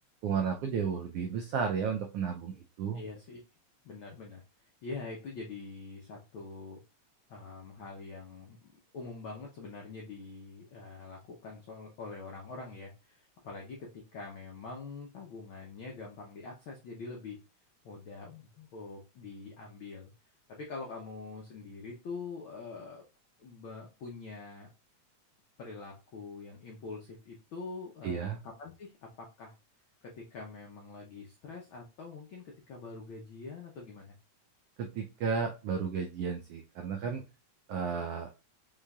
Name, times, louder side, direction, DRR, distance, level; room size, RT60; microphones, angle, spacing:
voice 1, 0.2-3.0 28.0-28.4 34.8-37.2 37.7-38.3, right 6 dB, 85° right, 3 dB, 1.3 m, -33 dB
voice 2, 2.9-3.4 3.8-6.8 7.3-17.4 17.8-20.1 20.5-23.0 23.4-24.7 25.6-28.9 29.2-29.6 30.0-34.2, left 4 dB, 90° left, 0 dB, 1.1 m, -44 dB
5.6 x 3.2 x 2.3 m, 0.30 s
omnidirectional pair, 3.4 m